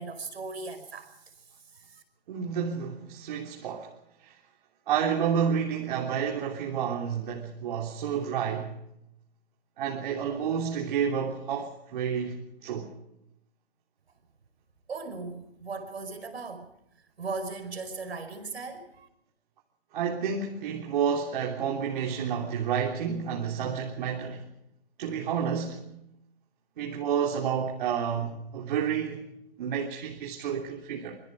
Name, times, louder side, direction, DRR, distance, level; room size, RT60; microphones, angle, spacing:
voice 1, 0.0-2.0 14.9-16.7 17.2-19.1, right 3 dB, 75° right, 5.4 m, -38 dB
voice 2, 2.3-3.9 4.2-4.3 4.9-8.8 9.8-12.9 19.9-24.5 25.0-25.8 26.8-29.3 29.6-31.2, right 7 dB, 50° right, 3.5 m, -30 dB
25.5 x 23.5 x 4.9 m
hypercardioid pair, 135°, 32 cm